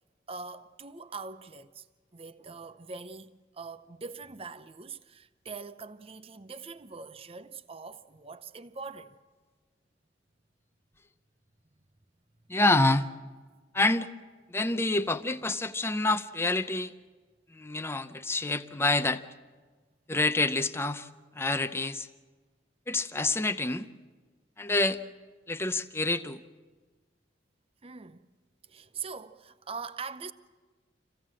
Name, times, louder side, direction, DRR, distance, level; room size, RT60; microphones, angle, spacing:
voice 1, 0.3-1.9 2.1-9.2 27.8-28.3 28.6-30.3, right 4 dB, 30° right, 0.7 m, -42 dB
voice 2, 12.5-13.1 13.7-14.1 14.5-16.9 17.5-19.2 20.1-21.1 21.4-22.1 22.9-23.9 24.6-25.0 25.5-26.4, left 2 dB, 15° left, 0.6 m, -27 dB
26.5 x 16.0 x 7.5 m
head